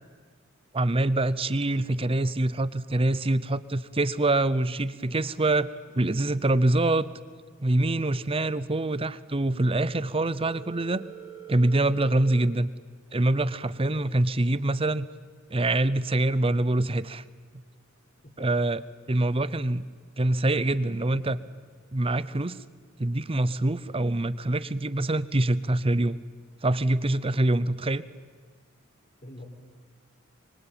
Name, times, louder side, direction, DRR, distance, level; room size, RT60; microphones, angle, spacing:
voice 1, 0.7-5.7 6.0-7.0 7.6-11.1 11.5-12.7 13.1-15.1 15.5-17.2 18.4-18.8 19.1-19.8 20.2-21.4 21.9-22.6 23.0-26.2 26.6-28.0, right 2 dB, 30° right, 17 dB, 0.8 m, -25 dB
Telephone, 10.4-12.4, right 9 dB, 75° left, 6.0 m, -44 dB
voice 2, 20.8-21.3 23.1-23.2 29.2-29.5, left 1 dB, 40° left, 5 dB, 4.1 m, -46 dB
24.5 x 24.0 x 9.1 m, 1.5 s
head